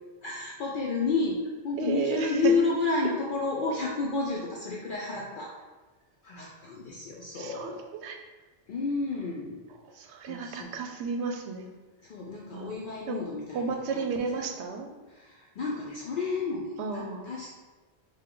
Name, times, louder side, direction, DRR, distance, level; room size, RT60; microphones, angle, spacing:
voice 1, 0.2-5.5 6.2-7.8 8.7-9.6 10.3-10.8 12.0-14.1 15.1-17.5, left 3 dB, 60° left, -3 dB, 0.6 m, -31 dB
voice 2, 1.8-2.6 7.3-8.2 9.8-11.7 12.5-12.8 13.1-13.3 13.5-14.9 16.8-17.3, right 4 dB, 85° right, 4 dB, 0.9 m, -33 dB
5.2 x 2.2 x 3.7 m, 1.2 s
omnidirectional pair, 1.1 m